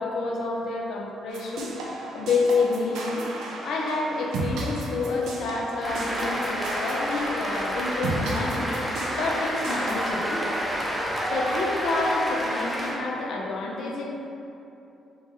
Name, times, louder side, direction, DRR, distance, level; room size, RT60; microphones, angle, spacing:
voice 1, 0.0-3.3 3.6-10.4 11.3-14.1, left 3 dB, 75° left, -1 dB, 0.5 m, -29 dB
sound 1, 1.3-10.1, right 2 dB, 90° right, 0.4 m, -34 dB
Cheering / Applause, 5.8-12.9, equal, ahead, 0.6 m, -29 dB
3.4 x 2.6 x 3.6 m, 2.9 s
cardioid pair, 105°, 0 cm